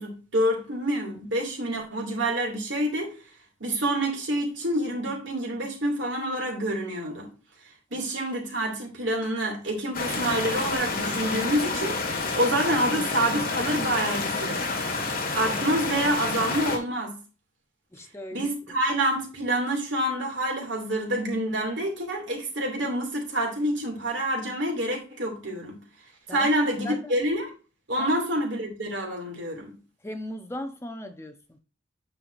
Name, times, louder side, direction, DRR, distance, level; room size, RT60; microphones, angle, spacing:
voice 1, 0.0-3.1 3.6-7.3 7.9-12.0 12.3-14.7 15.3-17.1 18.3-25.8 26.3-27.5 27.9-29.7, right 1 dB, 70° right, 2.5 m, -27 dB
sound 1, 9.9-16.8, left 3 dB, 45° left, 1.8 m, -29 dB
voice 2, 17.9-18.5 26.3-26.5 26.8-27.1 28.0-28.1 30.0-31.6, left 1 dB, 15° left, 0.7 m, -37 dB
8.9 x 5.6 x 2.6 m
head